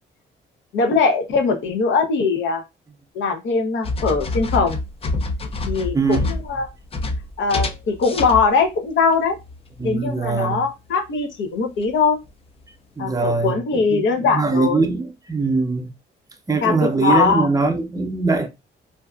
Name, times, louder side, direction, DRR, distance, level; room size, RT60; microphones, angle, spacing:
voice 1, 0.7-2.6 3.1-4.8 5.7-6.7 7.4-9.4 9.8-12.2 13.0-14.9 16.6-17.5, left 4 dB, 70° left, 0.7 m, -21 dB
sound 1, 3.8-8.7 9.1-9.9 11.8-11.9 12.3-12.4, left 2 dB, 30° left, 0.4 m, -27 dB
voice 2, 5.9-6.2 9.8-10.6 13.0-14.0 14.3-15.9 16.5-18.5, right 4 dB, 15° right, 0.6 m, -21 dB
2.6 x 2.3 x 2.3 m
cardioid pair, 90°, 20 cm